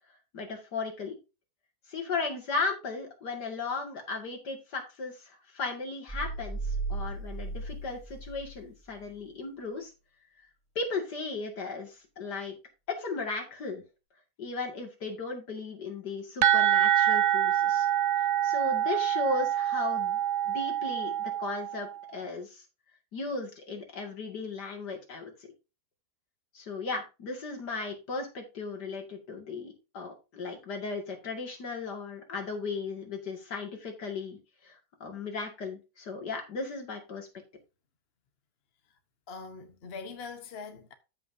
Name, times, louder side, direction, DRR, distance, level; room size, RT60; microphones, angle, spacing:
voice 1, 0.3-1.2 1.9-9.9 10.8-12.6 12.9-13.8 14.4-17.9 18.4-20.2 20.5-22.6 23.1-25.3 26.5-34.4 34.6-37.3, left 4 dB, 80° left, 2.9 m, -36 dB
sound 1, 6.1-8.7 9.0-9.1, right 3 dB, 5° right, 2.6 m, -35 dB
sound 2, 16.4-22.0, right 11 dB, 60° right, 0.9 m, -26 dB
voice 2, 39.3-40.9, left 4 dB, 40° left, 1.2 m, -42 dB
14.0 x 5.7 x 2.8 m
omnidirectional pair, 1.7 m